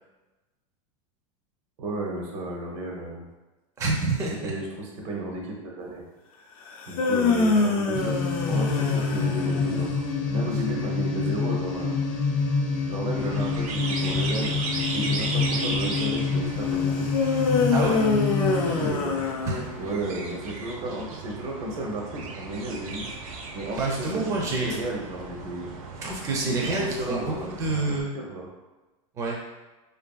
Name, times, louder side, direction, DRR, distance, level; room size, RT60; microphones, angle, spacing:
voice 1, 1.8-3.3 4.4-6.0 6.9-9.9 10.3-12.0 12.9-16.9 18.4-19.2 19.8-23.1 23.5-25.7 26.5-28.5, right 2 dB, 65° right, 0 dB, 0.8 m, -33 dB
voice 2, 3.8-4.5 7.5-7.6 17.7-18.0 19.5-19.7 23.8-24.8 26.0-28.1 29.2-29.4, right 3 dB, 20° right, -2 dB, 0.4 m, -28 dB
sound 1, 6.7-10.0 17.1-20.1, left 4 dB, 90° left, 0.5 m, -25 dB
sound 2, 7.9-18.9, left 4 dB, 50° left, 0.7 m, -27 dB
sound 3, 13.2-28.0, right 3 dB, 90° right, 0.4 m, -36 dB
2.6 x 2.5 x 2.3 m, 1.1 s
supercardioid pair, 115°, 17 cm